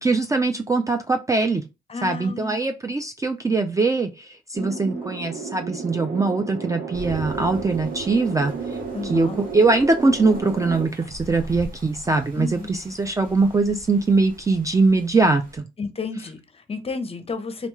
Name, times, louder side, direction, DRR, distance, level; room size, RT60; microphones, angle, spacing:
voice 1, 0.0-1.7 2.0-8.5 9.0-15.6, right 3 dB, 15° right, 0.3 m, -22 dB
voice 2, 1.9-2.6 4.6-5.1 8.9-9.4 12.4-12.7 15.8-17.7, left 4 dB, 30° left, 0.6 m, -32 dB
sound 1, 4.5-10.9, right 5 dB, 65° right, 1.0 m, -33 dB
sound 2, 6.9-15.6, equal, 45° right, 1.5 m, -42 dB
3.9 x 2.2 x 3.1 m
cardioid pair, 90°, 20 cm